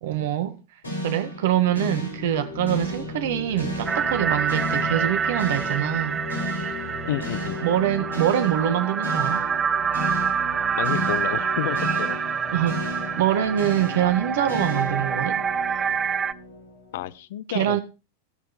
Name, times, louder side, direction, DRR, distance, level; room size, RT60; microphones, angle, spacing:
voice 1, 0.0-0.6 1.0-6.2 7.6-9.4 12.5-12.8 13.2-15.4 17.5-17.8, right 11 dB, 55° right, 1.5 m, -24 dB
sound 1, 0.8-17.1, left 1 dB, 70° left, 5.1 m, -33 dB
sound 2, 3.9-16.3, right 7 dB, 20° right, 0.4 m, -27 dB
voice 2, 7.1-7.6 10.8-12.2 16.9-17.8, left 13 dB, 55° left, 0.5 m, -30 dB
16.5 x 6.6 x 4.1 m
figure-of-eight pair, 90°, 0 cm